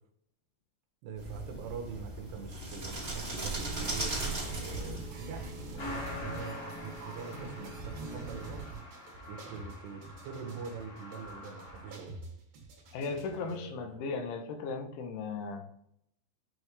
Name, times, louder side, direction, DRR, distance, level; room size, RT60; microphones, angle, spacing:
voice 1, 1.0-4.2 4.6-8.7 9.3-12.2 13.4-14.1, right 6 dB, 75° right, 2 dB, 2.7 m, -44 dB
sound 1, 1.2-6.2, right 2 dB, 35° right, 1.0 m, -38 dB
sound 2, 3.5-13.6, right 3 dB, 60° right, 2.5 m, -45 dB
Truck, 5.8-12.0, left 2 dB, 45° left, 2.1 m, -45 dB
voice 2, 12.9-15.7, left 4 dB, 80° left, 5 dB, 2.9 m, -37 dB
8.9 x 3.1 x 3.4 m, 0.72 s
omnidirectional pair, 5.7 m